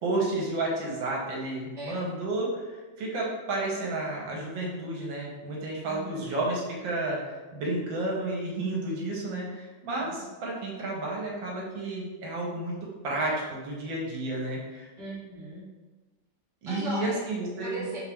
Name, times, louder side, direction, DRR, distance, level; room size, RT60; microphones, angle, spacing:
voice 1, 0.0-14.9 16.6-17.8, right 2 dB, 80° right, -3 dB, 1.5 m, -31 dB
voice 2, 5.8-6.2 10.0-10.1 15.0-15.6 16.6-17.2 17.6-18.0, right 1 dB, ahead, -9 dB, 0.9 m, -37 dB
4.3 x 2.4 x 3.4 m, 1.2 s
omnidirectional pair, 2.1 m